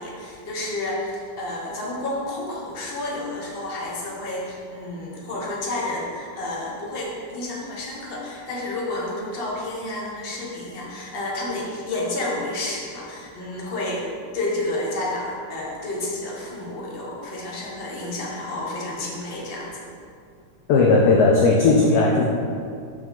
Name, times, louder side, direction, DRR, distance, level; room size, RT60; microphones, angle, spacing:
voice 1, 0.0-19.8, left 2 dB, 35° left, -3 dB, 1.1 m, -30 dB
voice 2, 20.7-22.4, left 3 dB, 70° left, -1 dB, 1.0 m, -17 dB
6.9 x 4.7 x 3.8 m, 2.4 s
omnidirectional pair, 2.0 m